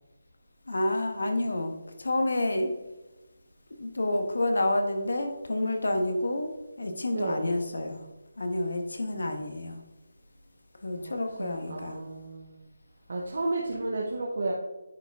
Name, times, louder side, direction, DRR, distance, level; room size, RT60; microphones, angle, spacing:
voice 1, 0.7-1.7 2.0-2.7 3.8-8.0 8.4-9.8 10.8-12.0, left 1 dB, 80° left, 5 dB, 1.3 m, -29 dB
voice 2, 7.1-7.6 10.9-11.1 11.4-12.6 13.1-14.5, right 2 dB, 45° right, -2 dB, 0.9 m, -32 dB
10.0 x 5.1 x 3.5 m, 1.1 s
hypercardioid pair, 180°, 0 cm